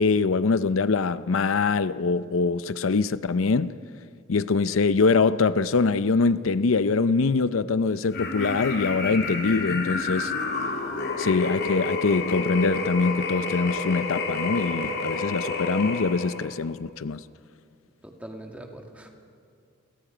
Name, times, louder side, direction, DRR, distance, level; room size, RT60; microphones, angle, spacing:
voice 1, 0.0-3.8 4.3-10.3 11.2-17.2, left 4 dB, 80° left, 0.6 m, -23 dB
sound 1, 8.1-16.5, left 3 dB, 55° left, 3.2 m, -29 dB
voice 2, 18.0-19.1, right 1 dB, 5° right, 2.2 m, -42 dB
30.0 x 24.0 x 5.1 m
head